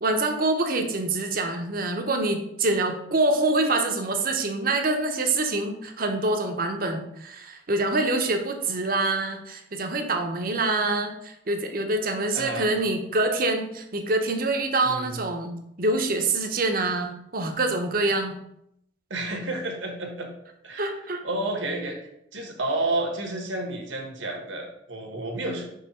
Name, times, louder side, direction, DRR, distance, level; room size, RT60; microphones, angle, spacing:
voice 1, 0.0-15.5 15.8-18.4 20.8-21.2, right 2 dB, 50° right, 4 dB, 0.8 m, -25 dB
voice 2, 12.3-12.7 14.8-15.2 19.1-20.3 20.6-25.7, right 2 dB, 80° right, 2 dB, 1.4 m, -31 dB
5.6 x 3.4 x 5.6 m, 0.77 s
head